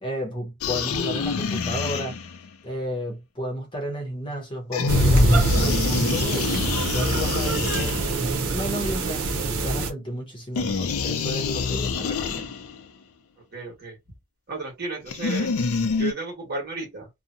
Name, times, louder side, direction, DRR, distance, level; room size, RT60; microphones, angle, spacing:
voice 1, 0.0-2.2 2.6-6.7 6.9-8.1 8.5-9.2 9.6-12.5, equal, 25° left, 0.8 m, -32 dB
sound 1, 0.6-2.5 4.7-8.4 10.5-12.8 15.1-16.1, left 4 dB, 75° left, 0.5 m, -26 dB
sound 2, 4.9-9.9, right 2 dB, 85° right, 0.7 m, -23 dB
voice 2, 13.5-14.0 14.5-15.5 16.0-17.1, right 3 dB, 45° right, 1.3 m, -33 dB
2.7 x 2.1 x 2.5 m
head